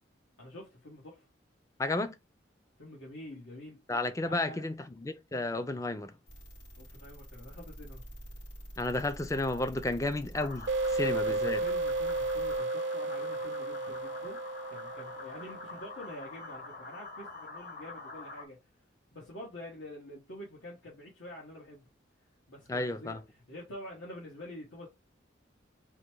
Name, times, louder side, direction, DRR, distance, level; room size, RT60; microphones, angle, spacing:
voice 1, 0.4-1.3 2.8-3.8 4.2-4.7 6.8-8.1 10.9-14.4 14.7-18.6 19.1-21.9 22.5-24.9, left 1 dB, 80° left, 1.3 m, -47 dB
voice 2, 1.8-2.1 3.9-6.1 8.8-11.6 22.7-23.2, left 2 dB, 15° left, 0.4 m, -32 dB
sound 1, 6.3-12.6, equal, 60° left, 2.3 m, -48 dB
sound 2, 10.3-18.4, left 3 dB, 45° left, 1.1 m, -46 dB
sound 3, 10.7-16.0, right 3 dB, 60° right, 0.4 m, -33 dB
3.9 x 2.1 x 4.5 m
head